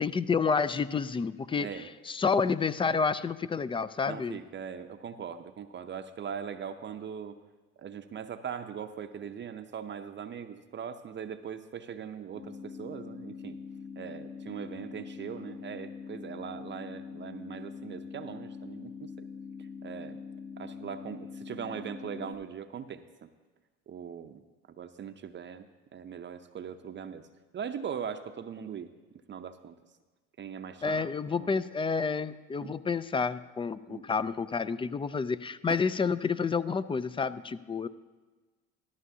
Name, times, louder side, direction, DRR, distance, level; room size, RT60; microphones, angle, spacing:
voice 1, 0.0-4.4 30.8-37.9, left 5 dB, 20° left, 16 dB, 0.3 m, -29 dB
voice 2, 1.6-1.9 2.2-2.3 4.1-7.4 7.8-13.6 14.0-19.1 19.8-20.2 20.6-23.3 23.9-24.4 24.8-25.7 25.9-27.3 27.5-28.9 29.3-29.8 30.4-31.1 31.4-31.6 32.6-32.7 33.9-34.0, right 7 dB, 35° right, 8 dB, 0.6 m, -40 dB
sound 1, 12.3-22.3, left 6 dB, 55° left, 3.7 m, -43 dB
13.5 x 12.5 x 2.7 m, 1.3 s
supercardioid pair, 80°, 30 cm